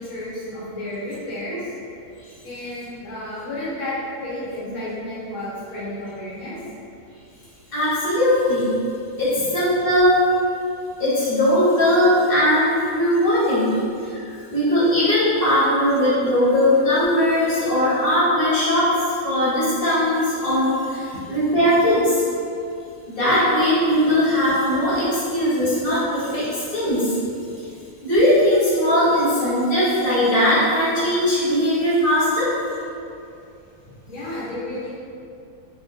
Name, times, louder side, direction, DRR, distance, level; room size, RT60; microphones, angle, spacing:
voice 1, 0.0-1.7 2.4-6.6 21.1-21.2 33.8-34.9, left 1 dB, 90° left, -8 dB, 1.4 m, -32 dB
voice 2, 7.7-8.8 9.2-10.3 11.0-13.8 14.1-22.2 23.1-27.2 28.0-32.6, left 1 dB, 45° left, -10 dB, 0.9 m, -19 dB
3.5 x 2.2 x 2.5 m, 2.5 s
omnidirectional pair, 1.5 m